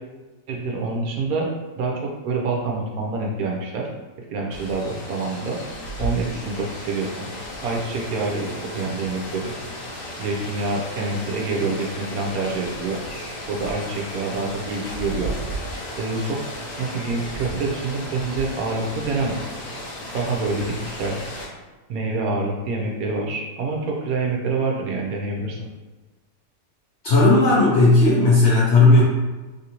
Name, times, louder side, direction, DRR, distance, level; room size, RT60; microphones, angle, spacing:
voice 1, 0.5-1.5 1.8-3.9 4.3-5.6 6.0-7.3 7.6-9.5 10.2-13.0 13.5-15.3 15.9-16.4 16.8-19.5 20.1-21.2 21.9-25.7, right 3 dB, 70° right, -1 dB, 1.0 m, -26 dB
Rain, 4.5-21.5, equal, 90° left, 1.5 m, -34 dB
voice 2, 27.0-29.0, left 2 dB, 70° left, -6 dB, 0.6 m, -15 dB
3.3 x 2.6 x 2.8 m, 1.2 s
omnidirectional pair, 1.8 m